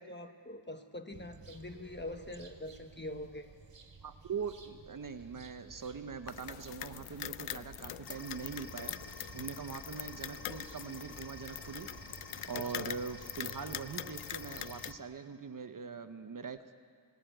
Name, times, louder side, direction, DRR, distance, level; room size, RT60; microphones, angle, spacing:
voice 1, 0.0-3.5 12.5-13.0, left 1 dB, 20° left, 6 dB, 1.1 m, -44 dB
sound 1, 1.1-15.0, right 4 dB, 55° right, 2.0 m, -54 dB
voice 2, 4.0-12.2 12.5-16.7, right 5 dB, 40° right, 8 dB, 0.8 m, -42 dB
water dripping from gutter to ground, 6.3-14.9, left 12 dB, 75° left, 0.5 m, -43 dB
sound 2, 8.1-14.9, left 2 dB, 45° left, 1.8 m, -52 dB
18.5 x 15.5 x 9.1 m, 2.1 s
wide cardioid pair, 130°, 50 cm